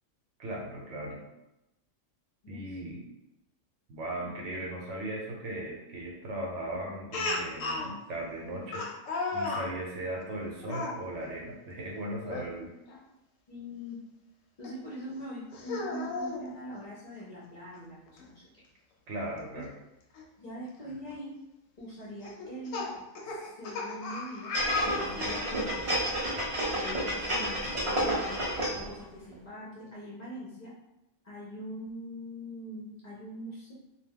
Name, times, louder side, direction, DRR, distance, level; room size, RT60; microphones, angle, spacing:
voice 1, 0.4-1.2 2.5-3.0 3.9-8.9 9.3-12.7 19.1-19.7, right 1 dB, 70° right, -1 dB, 0.9 m, -37 dB
voice 2, 2.4-2.8 4.3-4.4 13.5-14.0 14.6-18.7 19.5-19.6 20.4-21.3 21.8-22.9 23.3-24.6 24.8-26.0 26.6-30.7 31.2-33.7, equal, 45° left, -7 dB, 0.5 m, -42 dB
Speech, 7.1-7.9 8.7-9.7 10.6-11.0 12.2-12.5 12.9-13.0 14.6-14.7 15.5-16.4 17.8-17.9 18.2-18.3 20.2-20.3 20.9-21.1 22.2-25.6, left 3 dB, 85° left, 1.0 m, -34 dB
sound 1, 24.5-28.9 29.3-29.4, right 1 dB, 50° right, 0.4 m, -30 dB
2.3 x 2.2 x 3.5 m, 0.93 s
omnidirectional pair, 1.3 m